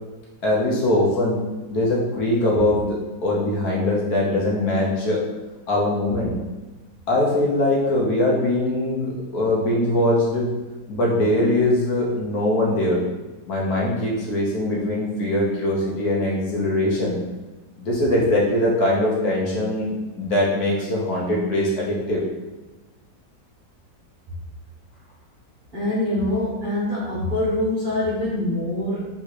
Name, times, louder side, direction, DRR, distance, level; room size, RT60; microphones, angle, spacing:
voice 1, 0.4-1.4 1.7-5.2 5.7-6.3 7.1-10.5 10.9-13.0 13.5-17.2 17.8-19.9 20.1-22.2, left 1 dB, 65° left, -4 dB, 1.3 m, -22 dB
voice 2, 25.7-29.1, left 1 dB, 30° right, -9 dB, 1.1 m, -24 dB
4.2 x 3.6 x 3.1 m, 1.2 s
omnidirectional pair, 1.9 m